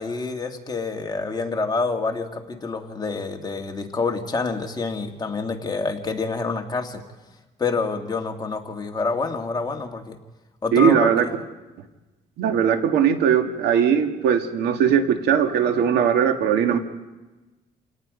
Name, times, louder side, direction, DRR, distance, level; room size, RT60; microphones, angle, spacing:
voice 1, 0.0-7.0 7.6-10.2 10.6-11.4, left 4 dB, 25° left, 2 dB, 2.2 m, -27 dB
voice 2, 10.7-11.3 12.4-16.8, right 8 dB, 80° right, 6 dB, 2.0 m, -19 dB
29.0 x 18.0 x 5.2 m, 1.1 s
cardioid pair, 110°, 17 cm